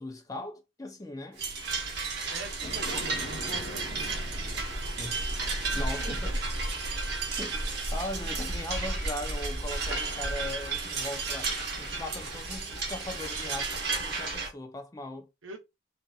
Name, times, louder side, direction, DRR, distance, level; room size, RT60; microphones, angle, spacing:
voice 1, 0.0-1.4 5.0-5.3 5.7-6.3 7.4-11.5 11.8-15.3, left 1 dB, 20° left, 0.4 m, -39 dB
sound 1, 1.4-14.5, right 4 dB, 55° right, 0.8 m, -34 dB
voice 2, 2.3-4.1 5.7-6.4 15.4-15.6, right 2 dB, 90° right, 0.8 m, -43 dB
sound 2, 2.6-11.1, equal, 55° left, 1.2 m, -36 dB
2.6 x 2.6 x 2.3 m
head